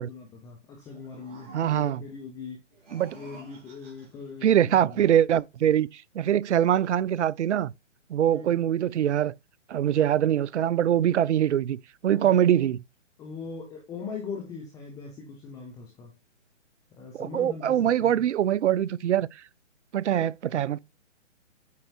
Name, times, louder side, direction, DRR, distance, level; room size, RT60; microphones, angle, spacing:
voice 1, 0.0-2.6 3.1-5.1 8.3-8.6 12.1-12.4 13.2-16.1 16.9-18.2, left 5 dB, 10° left, 0.8 m, -40 dB
sound 1, 0.8-2.2 2.7-4.3, right 3 dB, 30° right, 4.4 m, -50 dB
voice 2, 1.5-2.0 2.9-3.2 4.4-7.7 8.1-9.3 9.7-12.8 17.1-19.4 19.9-20.8, right 10 dB, 65° right, 0.5 m, -23 dB
8.3 x 5.1 x 2.4 m
figure-of-eight pair, 140°, 37 cm